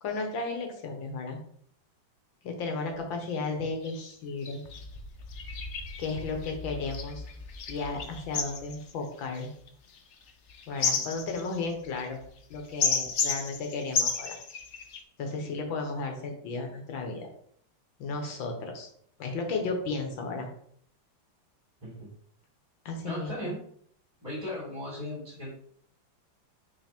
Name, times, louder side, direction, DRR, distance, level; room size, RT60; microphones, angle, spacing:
voice 1, 0.0-1.4 2.4-4.6 6.0-7.2 7.7-9.5 10.7-12.2 12.5-14.4 15.2-17.3 18.0-18.9 19.2-20.5 22.9-23.3, left 3 dB, 80° left, 3 dB, 2.0 m, -34 dB
sound 1, 2.9-3.0 3.2-3.4 3.8-4.0 4.4-15.0, left 5 dB, 60° left, 0.8 m, -33 dB
voice 2, 23.0-23.6 24.2-25.5, left 1 dB, 20° right, -8 dB, 3.1 m, -37 dB
5.8 x 4.2 x 4.4 m, 0.63 s
omnidirectional pair, 2.1 m